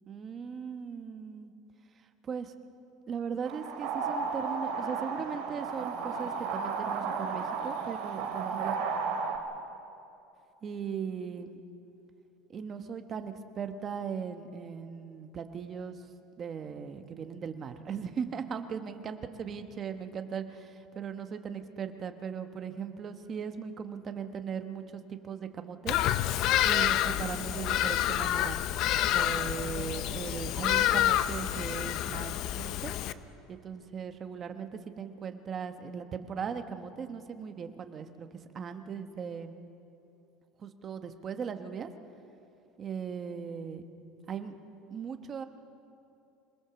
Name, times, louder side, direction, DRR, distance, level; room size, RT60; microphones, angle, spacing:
voice 1, 0.1-1.5 2.2-2.5 3.1-8.8 10.6-11.6 12.5-16.0 16.4-26.0 26.6-28.6 29.1-33.0 33.5-39.5 40.6-41.9 42.8-43.8 44.3-44.5 44.9-45.4, right 7 dB, 25° right, 8 dB, 1.0 m, -38 dB
sound 1, 3.4-9.4, right 5 dB, 65° right, 2.3 m, -33 dB
Bird vocalization bird call bird song, 25.9-33.1, left 12 dB, 40° left, 0.6 m, -28 dB
26.0 x 19.0 x 7.0 m, 2.7 s
cardioid pair, 180°, 0 cm